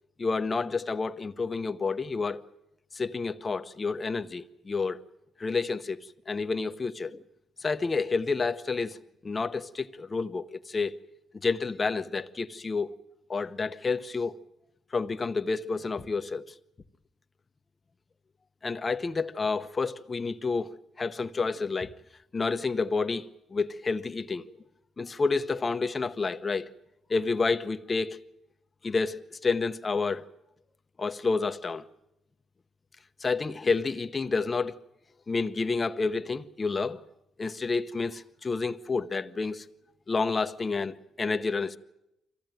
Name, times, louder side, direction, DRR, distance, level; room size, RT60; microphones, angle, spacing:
voice 1, 0.2-2.4 2.9-5.0 5.4-6.0 6.3-7.2 7.6-9.0 9.2-11.0 11.3-12.9 13.3-14.4 14.9-16.4 18.6-21.9 22.3-24.6 25.0-26.7 27.1-28.2 28.8-30.3 31.0-31.8 33.2-34.8 35.3-37.0 37.4-39.7 40.1-41.8, left 4 dB, 30° left, 1.0 m, -29 dB
24.5 x 15.5 x 9.1 m
cardioid pair, 90°, 0 cm